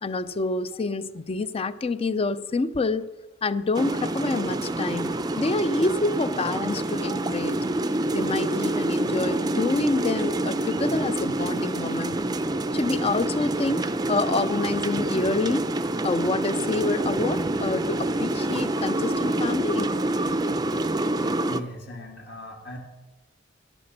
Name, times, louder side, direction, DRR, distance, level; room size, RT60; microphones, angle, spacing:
voice 1, 0.0-3.1 3.4-7.7 8.1-12.2 12.7-15.7 16.0-19.9, left 3 dB, 30° left, 15 dB, 0.4 m, -27 dB
sound 1, 3.7-21.6, right 1 dB, 20° right, 0.5 m, -27 dB
voice 2, 21.1-22.8, left 1 dB, 60° left, 0 dB, 2.0 m, -39 dB
10.5 x 10.0 x 6.4 m, 1.1 s
head